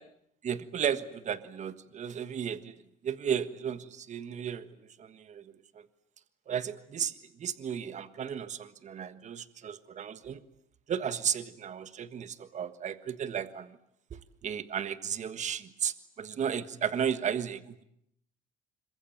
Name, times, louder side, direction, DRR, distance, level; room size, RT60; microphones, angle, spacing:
voice 1, 0.4-2.8 3.0-4.7 5.0-5.4 6.5-7.1 7.4-10.4 10.9-13.7 14.4-17.8, right 8 dB, 45° right, 12 dB, 1.5 m, -34 dB
26.0 x 23.0 x 9.2 m, 0.74 s
cardioid pair, 110°, 17 cm